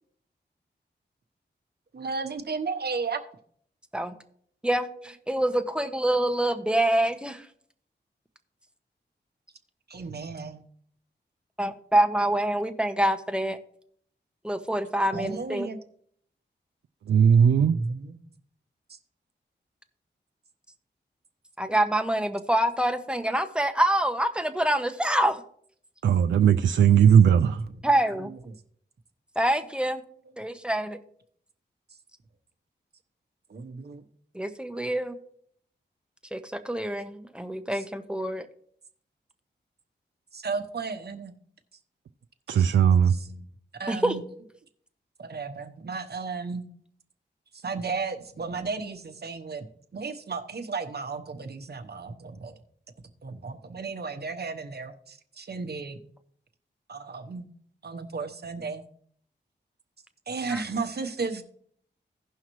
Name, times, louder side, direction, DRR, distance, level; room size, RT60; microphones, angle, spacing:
voice 1, 1.9-3.2 9.9-10.6 15.1-15.8 17.5-18.2 18.9-19.0 26.9-27.8 28.1-28.5 33.5-34.0 37.7-37.8 40.3-41.3 42.5-42.8 43.1-43.5 43.7-44.2 45.2-46.7 47.5-52.5 53.2-56.0 56.9-57.5 57.8-58.8 60.3-61.4, right 4 dB, 60° right, 7 dB, 1.1 m, -34 dB
voice 2, 4.6-7.5 11.6-13.6 14.4-15.7 21.6-25.4 27.8-28.3 29.4-30.0 30.4-31.0 34.3-35.1 36.3-38.5 43.9-44.1 60.5-60.6, right 1 dB, 5° right, 8 dB, 1.0 m, -26 dB
voice 3, 17.1-17.8 26.0-27.6 42.5-43.1, right 8 dB, 90° right, 4 dB, 0.4 m, -18 dB
16.5 x 5.7 x 3.1 m, 0.62 s
cardioid pair, 60°, 19 cm